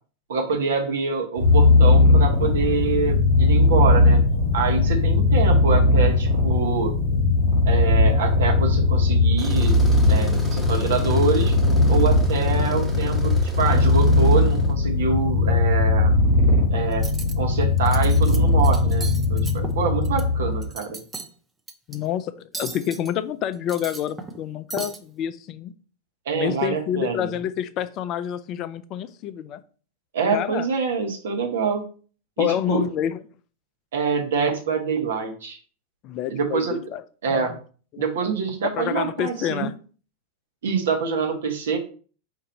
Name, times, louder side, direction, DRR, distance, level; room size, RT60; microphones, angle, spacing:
voice 1, 0.3-4.2 4.5-6.9 7.7-9.8 10.1-11.6 11.9-16.1 16.7-17.1 17.4-21.0 26.2-27.3 30.1-31.8 32.4-32.8 33.9-35.6 36.3-36.8 37.2-37.6 38.0-39.7 40.6-41.8, right 5 dB, 60° right, 3 dB, 0.9 m, -25 dB
Purr, 1.4-20.7, left 2 dB, 80° right, 1.5 m, -19 dB
Tools, 9.4-14.7, equal, 5° left, 0.9 m, -38 dB
Cutlery silverware, 16.9-17.3 17.8-18.4 18.6-20.2 20.6-21.3 21.7-22.0 22.5-23.1 23.5-24.4 24.7-25.0, right 3 dB, 15° right, 0.5 m, -36 dB
voice 2, 21.9-25.7 26.3-29.6 30.3-30.7 32.4-33.2 36.0-37.0 37.3-37.6 37.9-38.3 38.7-39.8, left 10 dB, 35° left, 14 dB, 0.3 m, -28 dB
4.4 x 2.5 x 4.2 m, 0.40 s
figure-of-eight pair, 90°, 0 cm